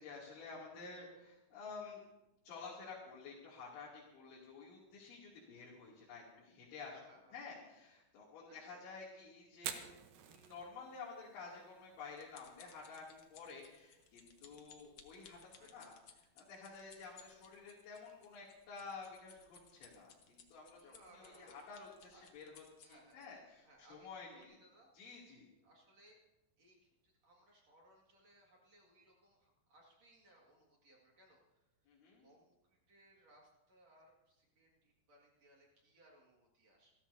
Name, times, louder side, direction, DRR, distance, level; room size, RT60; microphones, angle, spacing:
voice 1, 0.0-2.0 2.4-7.0 7.3-9.9 10.2-15.4 15.7-24.6 24.9-25.5 31.9-32.3, left 4 dB, 90° left, -7 dB, 5.2 m, -51 dB
voice 2, 6.9-7.4 8.5-8.8 15.6-15.9 20.7-21.6 22.1-22.3 22.8-23.3 23.6-24.9 25.6-26.2 26.6-31.9 32.2-36.9, right 1 dB, 45° right, -2 dB, 2.6 m, -66 dB
Fire, 9.5-23.4, right 9 dB, 75° right, 2.0 m, -56 dB
sound 1, 11.6-23.3 23.9-24.1 24.4-24.5, left 7 dB, 70° left, 1.5 m, -62 dB
27.0 x 14.5 x 2.8 m, 0.97 s
omnidirectional pair, 5.1 m